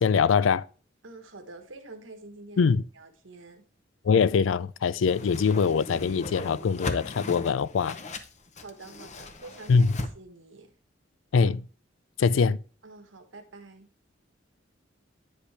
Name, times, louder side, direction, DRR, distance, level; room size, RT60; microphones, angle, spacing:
voice 1, 0.0-0.6 2.6-2.8 4.0-8.0 9.7-9.9 11.3-11.6 12.2-12.6, left 5 dB, 85° left, 0.4 m, -23 dB
voice 2, 1.0-3.6 8.6-10.7 12.8-13.9, right 2 dB, 85° right, 1.4 m, -47 dB
Whoosh swoosh swish, 5.1-10.1, left 2 dB, 40° left, 0.8 m, -37 dB
10.0 x 5.2 x 3.3 m
head